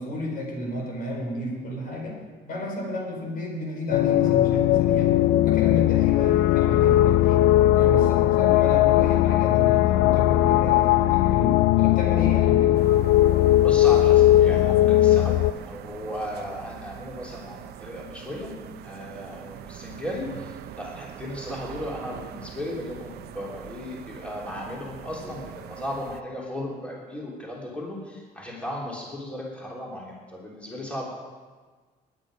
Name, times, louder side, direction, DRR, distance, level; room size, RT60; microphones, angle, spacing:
voice 1, 0.0-5.1 5.4-7.5 7.7-12.8, equal, 60° left, 0 dB, 4.6 m, -32 dB
sound 1, 3.9-15.5, left 14 dB, 85° left, 0.4 m, -19 dB
sound 2, 12.7-26.2, right 12 dB, 70° right, 0.6 m, -42 dB
voice 2, 13.6-15.3 15.7-18.6 18.8-31.1, left 1 dB, 5° left, -4 dB, 3.3 m, -36 dB
19.5 x 9.3 x 5.1 m, 1.4 s
cardioid pair, 110°, 17 cm